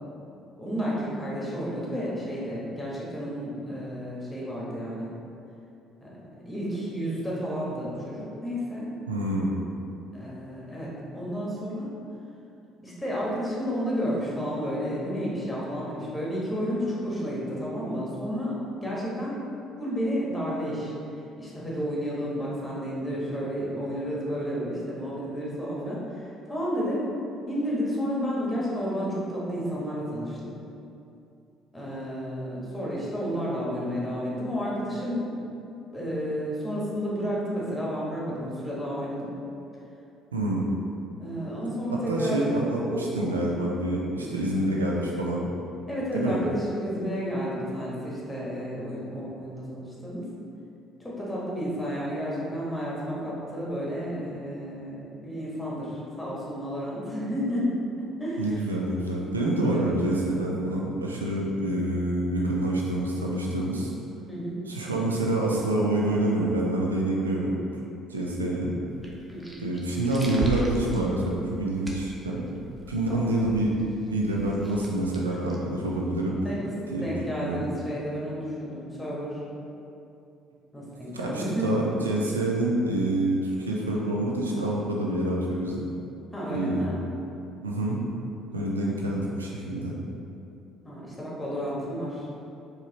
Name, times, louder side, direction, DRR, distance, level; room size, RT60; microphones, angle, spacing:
voice 1, 0.6-5.1 6.0-6.1 6.5-8.9 10.1-11.9 12.8-19.4 19.8-20.9 21.4-27.0 27.5-30.6 31.7-35.3 35.9-39.3 41.2-42.4 42.9-43.1 44.1-44.3 45.9-50.3 51.0-58.6 59.7-59.9 64.3-64.6 69.3-69.6 73.1-73.2 76.4-79.4 80.7-81.6 86.3-87.0 88.5-88.9 90.8-92.3, equal, 10° left, -6 dB, 1.4 m, -31 dB
voice 2, 9.1-9.6 40.3-40.7 42.1-45.5 46.1-46.4 58.4-63.9 64.7-67.5 68.1-68.7 69.6-72.4 72.9-73.7 74.1-76.4 76.9-77.1 77.3-77.6 81.1-85.9 86.5-87.0 87.6-88.0 88.5-89.9, right 1 dB, 90° right, -3 dB, 0.4 m, -27 dB
sound 1, 68.9-76.2, equal, 15° right, 0.7 m, -39 dB
4.6 x 3.1 x 3.0 m, 2.7 s
figure-of-eight pair, 55°, 0 cm